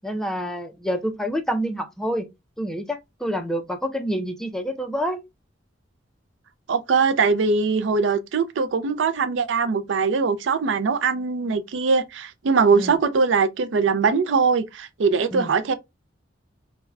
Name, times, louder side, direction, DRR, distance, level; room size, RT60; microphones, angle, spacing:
voice 1, 0.0-2.3 2.6-5.2 12.7-12.9 15.3-15.5, equal, 5° left, 0.3 m, -27 dB
voice 2, 6.7-15.7, right 5 dB, 70° right, 0.4 m, -21 dB
4.4 x 2.1 x 2.3 m
head